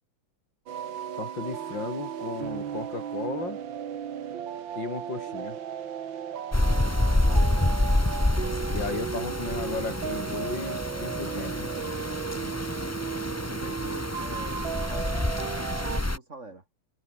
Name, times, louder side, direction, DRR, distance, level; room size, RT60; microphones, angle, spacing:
sound 1, 0.7-16.0, right 9 dB, 85° right, 2.2 m, -35 dB
voice 1, 1.2-3.6 4.8-5.6 8.7-11.7, left 4 dB, 75° left, 4.7 m, -35 dB
sound 2, 6.5-16.2, left 1 dB, 10° left, 1.3 m, -28 dB
voice 2, 7.1-7.9 13.3-15.2 15.8-16.6, right 2 dB, 40° right, 3.2 m, -44 dB
omnidirectional pair, 2.0 m